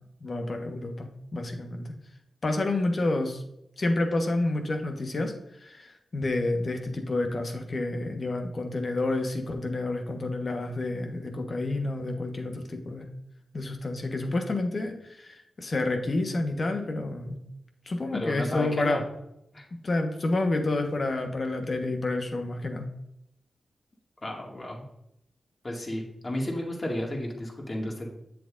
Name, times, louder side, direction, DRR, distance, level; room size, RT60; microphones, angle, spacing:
voice 1, 0.2-1.9 2.4-3.4 3.8-5.3 5.6-13.1 13.5-17.4 17.9-19.0 19.8-22.9, left 2 dB, 55° left, 4 dB, 1.3 m, -29 dB
voice 2, 18.1-19.0 19.5-19.7 24.2-24.8 25.6-28.1, left 1 dB, 40° left, 0 dB, 2.2 m, -32 dB
7.6 x 7.4 x 2.6 m, 0.81 s
cardioid pair, 45°, 0 cm